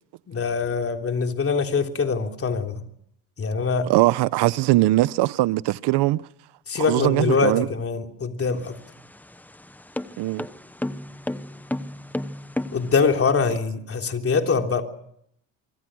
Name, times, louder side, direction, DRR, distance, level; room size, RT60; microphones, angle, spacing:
voice 1, 0.3-2.8 3.4-3.9 6.7-8.8 12.7-14.8, left 5 dB, 30° left, 3.5 m, -23 dB
voice 2, 3.9-6.2 6.7-7.7 10.2-10.4, right 17 dB, 65° right, 1.0 m, -21 dB
sound 1, 8.5-13.2, left 1 dB, 5° left, 0.9 m, -33 dB
25.5 x 25.0 x 6.3 m
cardioid pair, 115°, 43 cm